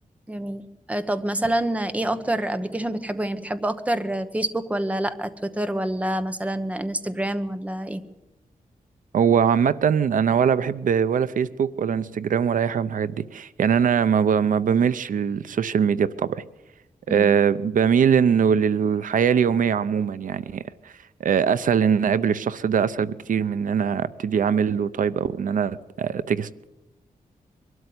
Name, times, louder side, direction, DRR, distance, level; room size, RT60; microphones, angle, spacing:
voice 1, 0.3-0.6 0.9-8.0 17.1-17.4, right 1 dB, 10° right, 10 dB, 1.0 m, -27 dB
voice 2, 9.1-16.4 17.1-20.9 21.2-26.5, right 7 dB, 70° right, 15 dB, 0.6 m, -22 dB
23.5 x 12.5 x 9.6 m, 0.99 s
wide cardioid pair, 160°, 14 cm